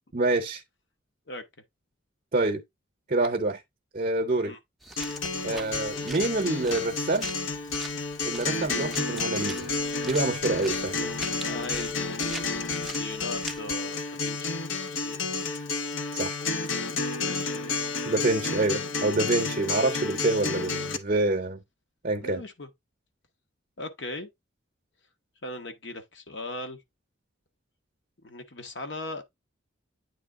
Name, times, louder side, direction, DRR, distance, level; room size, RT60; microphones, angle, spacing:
voice 1, 0.1-0.6 2.3-2.6 3.1-3.6 3.9-4.5 5.4-7.3 8.2-9.7 10.0-11.1 16.1-16.4 18.1-21.6 22.0-22.4, right 2 dB, 40° right, 0.7 m, -27 dB
sound 1, 4.8-13.7, right 2 dB, ahead, 0.5 m, -43 dB
Acoustic guitar, 5.0-21.0, left 4 dB, 85° left, 0.8 m, -31 dB
voice 2, 11.3-14.6 14.9-15.3 16.8-16.9 17.2-18.6 22.2-22.7 23.8-24.3 25.4-26.8 28.2-29.2, left 2 dB, 60° left, 1.1 m, -39 dB
8.9 x 3.2 x 3.7 m
head